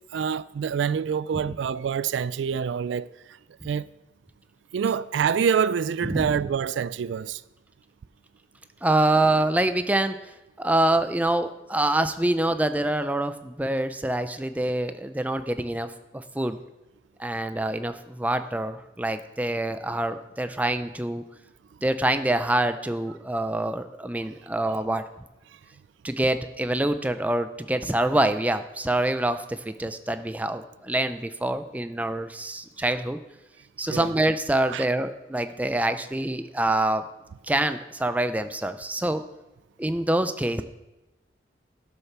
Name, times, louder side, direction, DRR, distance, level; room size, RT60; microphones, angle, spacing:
voice 1, 0.1-3.1 3.6-3.9 4.7-7.4 33.9-34.1 34.7-34.8, right 7 dB, 80° right, 0.3 m, -26 dB
voice 2, 6.1-6.5 8.8-10.3 10.6-16.6 17.2-21.2 21.8-25.0 26.0-33.2 33.8-37.0 37.5-39.2 39.8-40.6, right 1 dB, 10° right, 0.4 m, -26 dB
12.5 x 6.6 x 6.0 m
head